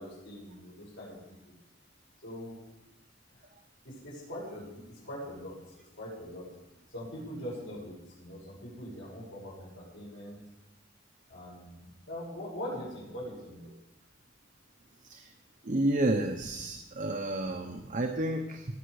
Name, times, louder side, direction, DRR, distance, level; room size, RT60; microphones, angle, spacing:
voice 1, 0.0-1.5 2.2-2.5 3.8-5.6 6.0-6.5 6.9-10.4 11.3-13.7, equal, 70° left, -5 dB, 6.0 m, -42 dB
voice 2, 15.6-18.7, right 1 dB, 40° right, 4 dB, 0.9 m, -30 dB
18.0 x 9.3 x 4.9 m, 0.97 s
head